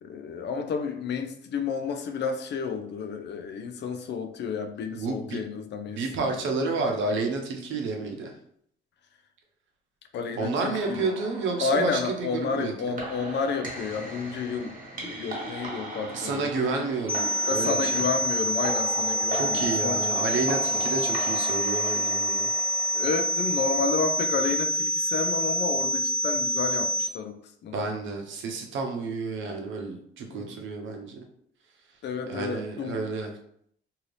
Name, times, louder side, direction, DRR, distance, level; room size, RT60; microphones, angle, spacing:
voice 1, 0.0-6.4 10.1-11.1 11.6-16.7 17.5-20.0 20.7-20.9 22.9-27.8 30.3-30.6 32.0-33.0, left 5 dB, 60° left, 7 dB, 0.5 m, -31 dB
voice 2, 4.9-5.4 5.9-8.3 10.4-12.7 16.1-18.1 19.3-22.5 27.7-31.2 32.3-33.3, right 3 dB, 75° right, 2 dB, 0.7 m, -30 dB
sound 1, 10.6-24.5, right 1 dB, 40° right, 1.2 m, -39 dB
sound 2, 17.1-27.1, equal, 5° left, 0.4 m, -27 dB
2.7 x 2.5 x 3.2 m, 0.66 s
cardioid pair, 90°, 20 cm